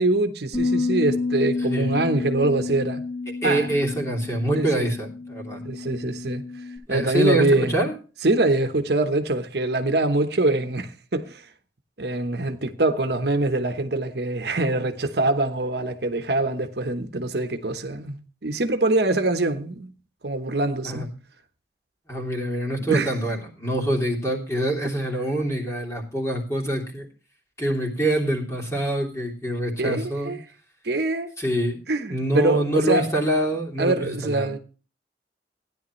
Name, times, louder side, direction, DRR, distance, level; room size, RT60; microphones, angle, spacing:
voice 1, 0.0-3.0 3.4-3.7 4.5-4.9 5.6-6.4 6.9-7.7 8.2-11.5 12.0-19.9 20.2-21.1 22.8-23.1 29.8-30.4 30.8-31.3 31.9-33.1 33.8-34.6, right 2 dB, 65° right, 1.1 m, -24 dB
Bass guitar, 0.5-6.8, left 3 dB, 50° left, 6.8 m, -29 dB
voice 2, 1.6-1.9 3.4-5.6 6.9-7.9 20.8-21.1 22.1-27.1 27.6-30.3 31.4-31.8 32.1-34.5, right 1 dB, 15° left, 3.0 m, -25 dB
15.5 x 10.5 x 3.2 m
head